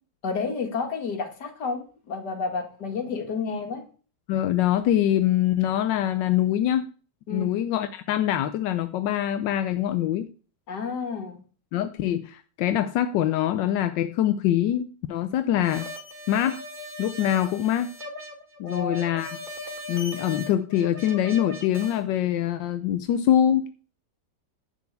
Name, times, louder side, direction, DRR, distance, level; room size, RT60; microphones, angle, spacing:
voice 1, 0.2-3.8 7.3-7.5 10.7-11.4 18.6-19.0, left 4 dB, 70° left, 5 dB, 2.3 m, -30 dB
voice 2, 4.3-6.9 7.3-10.3 11.7-15.9 16.3-16.6 17.0-17.9 18.6-19.4 19.9-23.7, left 11 dB, 90° left, 10 dB, 1.3 m, -24 dB
sound 1, 15.6-22.0, left 1 dB, 25° right, 2.2 m, -39 dB
10.5 x 4.6 x 8.0 m, 0.38 s
omnidirectional pair, 1.9 m